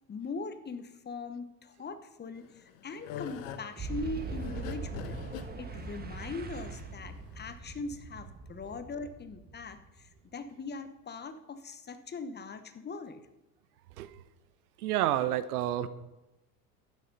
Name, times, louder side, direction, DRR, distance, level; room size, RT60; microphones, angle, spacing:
voice 1, 0.1-5.2 5.6-13.2, left 3 dB, 20° left, 10 dB, 1.0 m, -41 dB
sound 1, 2.4-7.5, left 8 dB, 55° left, 1.2 m, -44 dB
Boom, 3.8-10.3, right 3 dB, 20° right, 1.3 m, -41 dB
voice 2, 14.8-15.9, right 12 dB, 65° right, 15 dB, 0.9 m, -29 dB
11.5 x 9.8 x 5.4 m, 0.98 s
figure-of-eight pair, 75°, 48 cm